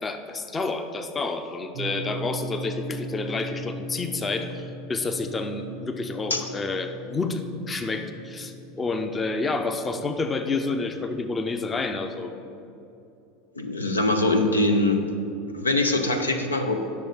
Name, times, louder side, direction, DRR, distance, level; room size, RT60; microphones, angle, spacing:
voice 1, 0.0-12.3, left 3 dB, 20° left, 7 dB, 0.6 m, -29 dB
sound 1, 1.7-11.9, right 2 dB, 45° right, 0.6 m, -39 dB
voice 2, 13.6-15.0 15.5-16.8, left 2 dB, 85° left, 5 dB, 0.6 m, -23 dB
9.9 x 6.6 x 4.0 m, 2.7 s
figure-of-eight pair, 80°, 0 cm